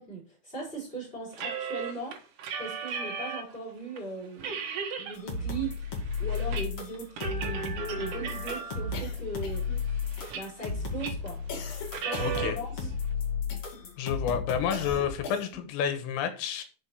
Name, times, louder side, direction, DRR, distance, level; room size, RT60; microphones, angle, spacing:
voice 1, 0.0-2.2 2.6-4.7 5.0-5.8 6.2-9.6 9.9-10.0 10.3-11.4 11.9-12.9, right 2 dB, 10° left, -3 dB, 5.5 m, -39 dB
sound 1, 1.3-3.6 4.0-4.1 4.4-5.2 5.5-6.7 6.9-9.0 9.5-10.7 11.0-11.3 11.8-12.5, right 6 dB, 75° right, 1.9 m, -36 dB
sound 2, 5.1-14.9, left 4 dB, 45° left, 2.1 m, -34 dB
sound 3, 8.9-9.8 10.2-10.7 11.5-13.0 13.5-13.9 14.7-15.7, left 4 dB, 70° left, 4.3 m, -41 dB
voice 2, 12.2-12.6 14.0-16.6, left 8 dB, 90° left, 9 dB, 3.8 m, -30 dB
8.8 x 6.4 x 4.7 m, 0.37 s
omnidirectional pair, 5.7 m